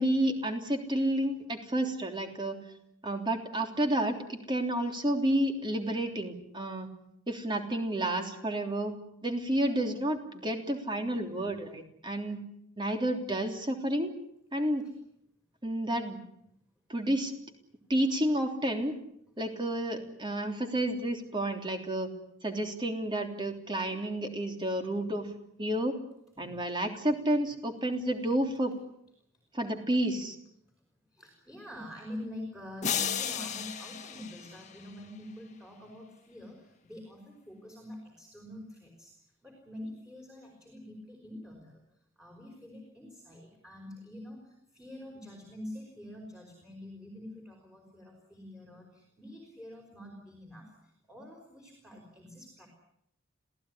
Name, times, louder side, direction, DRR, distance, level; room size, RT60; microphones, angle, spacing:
voice 1, 0.0-2.6 3.0-6.9 7.3-9.0 9.2-12.4 12.8-14.1 14.5-14.8 15.6-16.2 16.9-17.3 17.9-19.0 19.4-22.1 22.4-25.3 25.6-25.9 26.4-28.7 29.5-30.4, right 1 dB, 25° right, 5 dB, 3.3 m, -30 dB
voice 2, 31.1-41.8 42.2-52.7, left 1 dB, 5° right, 2 dB, 5.3 m, -46 dB
sound 1, 32.8-35.2, left 8 dB, 35° left, 1.8 m, -34 dB
27.0 x 16.5 x 9.9 m, 0.75 s
head